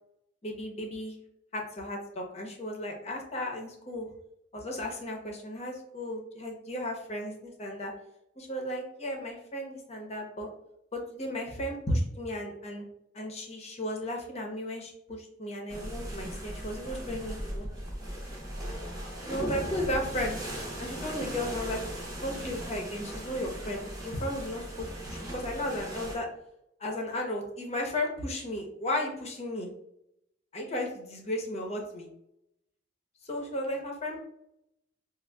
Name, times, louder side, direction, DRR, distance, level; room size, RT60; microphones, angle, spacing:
voice 1, 0.4-1.2 1.5-4.1 4.5-7.9 8.4-10.5 10.9-12.9 13.1-17.7 19.2-20.4 20.8-21.8 22.2-26.3 26.8-29.7 30.5-32.1 33.2-34.2, left 1 dB, 35° left, 1 dB, 0.7 m, -34 dB
sound 1, 15.7-26.2, equal, 20° right, 0.8 m, -38 dB
5.1 x 2.1 x 2.2 m, 0.80 s
head